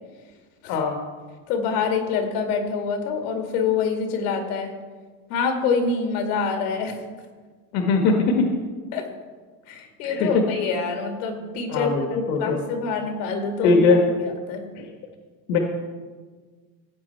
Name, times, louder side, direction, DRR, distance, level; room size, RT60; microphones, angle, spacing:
voice 1, 1.5-4.7 5.3-7.0 8.9-9.1 9.7-13.8 14.5-14.7, left 5 dB, 80° left, 3 dB, 2.3 m, -26 dB
voice 2, 7.7-8.4 10.0-10.4 11.7-12.6 13.6-14.0 14.8-14.9 15.5-15.6, left 4 dB, 55° left, 2 dB, 1.4 m, -20 dB
15.0 x 8.4 x 4.3 m, 1.5 s
cardioid pair, 160°, 44 cm